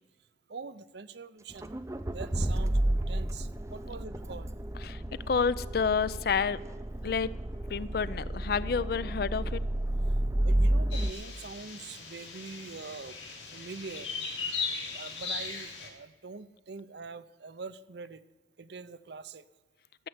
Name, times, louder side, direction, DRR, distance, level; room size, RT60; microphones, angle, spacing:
voice 1, 0.5-1.7 2.1-4.5 10.4-13.2 13.5-14.1 14.9-18.2 18.6-19.4, right 4 dB, 60° right, 14 dB, 0.6 m, -44 dB
Accelerating revving vroom, 1.5-11.1, right 1 dB, 15° right, 0.5 m, -31 dB
voice 2, 5.3-6.6 7.0-7.3 7.7-9.6, left 5 dB, 55° left, 17 dB, 0.4 m, -29 dB
sound 1, 10.9-15.9, left 4 dB, 75° left, 2.9 m, -38 dB
14.0 x 7.8 x 7.9 m, 1.3 s
head